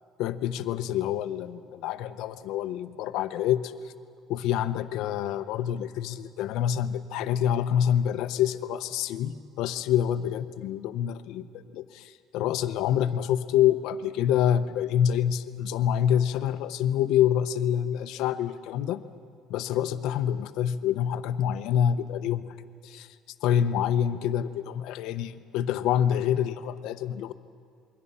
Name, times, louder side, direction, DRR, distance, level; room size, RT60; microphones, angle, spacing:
voice 1, 0.2-3.9 4.3-19.0 19.5-22.5 22.8-23.1 23.4-27.3, left 10 dB, 70° left, 11 dB, 0.8 m, -27 dB
28.0 x 22.5 x 5.6 m, 2.3 s
cardioid pair, 175°, 0 cm